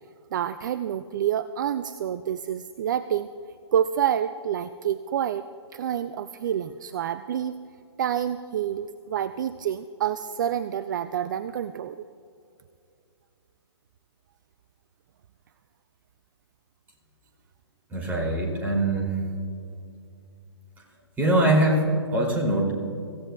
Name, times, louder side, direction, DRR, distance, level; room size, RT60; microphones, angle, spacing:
voice 1, 0.3-3.3 3.7-5.4 5.7-7.6 8.0-12.1, right 9 dB, 45° right, 14 dB, 0.4 m, -28 dB
voice 2, 17.9-19.1 21.2-22.7, right 1 dB, 10° right, -1 dB, 2.8 m, -23 dB
25.0 x 15.5 x 2.3 m, 2.5 s
figure-of-eight pair, 125°, 15 cm